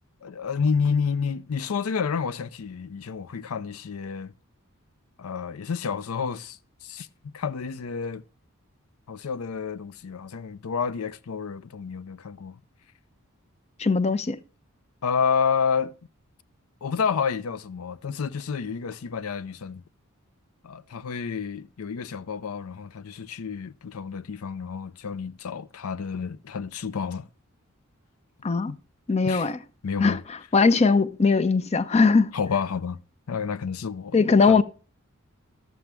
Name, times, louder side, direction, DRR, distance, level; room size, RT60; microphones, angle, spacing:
voice 1, 0.2-4.3 5.2-8.2 9.1-12.6 15.0-15.9 16.8-19.8 20.6-27.3 28.7-28.8 29.2-29.5 29.8-30.2 32.3-33.0 33.3-34.6, left 6 dB, 85° left, 0.5 m, -29 dB
voice 2, 13.8-14.4 28.4-28.7 29.1-29.6 30.0-30.2 30.5-32.3 34.1-34.6, left 4 dB, 30° left, 0.5 m, -20 dB
12.5 x 7.3 x 3.4 m
head